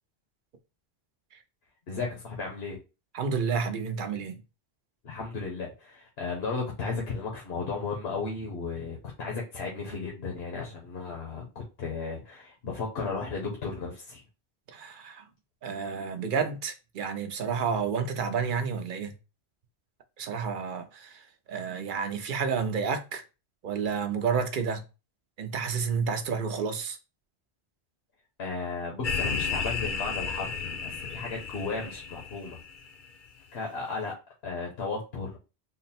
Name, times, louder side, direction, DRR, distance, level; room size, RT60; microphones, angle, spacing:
voice 1, 1.9-2.8 5.0-14.2 28.4-32.6 33.5-34.1 34.4-35.4, left 4 dB, 75° left, 1.2 m, -35 dB
voice 2, 3.1-4.4 14.7-15.2 15.6-19.1 20.2-21.2 21.5-23.2 23.6-24.8 25.4-27.0, right 6 dB, 55° right, 0.7 m, -30 dB
sound 1, 29.0-32.9, left 5 dB, 55° left, 0.8 m, -33 dB
3.9 x 2.1 x 4.1 m
omnidirectional pair, 1.1 m